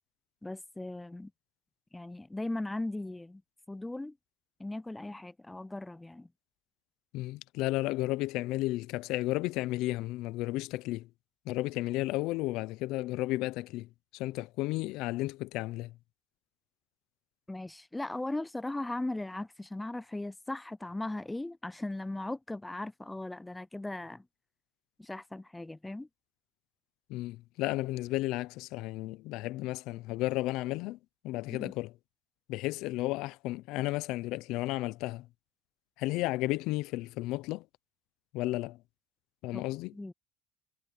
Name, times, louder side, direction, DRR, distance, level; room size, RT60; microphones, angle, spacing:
voice 1, 0.4-1.3 1.9-3.4 3.7-4.2 4.6-6.3 17.5-24.2 25.0-26.1 31.5-31.7 39.5-39.6 39.9-40.1, left 2 dB, 10° left, 0.3 m, -38 dB
voice 2, 7.1-11.1 11.5-16.0 27.1-31.0 31.2-31.9 32.5-35.3 36.0-37.7 38.3-38.8 39.4-40.0, left 18 dB, 75° left, 0.6 m, -33 dB
supercardioid pair, 105°, 0 cm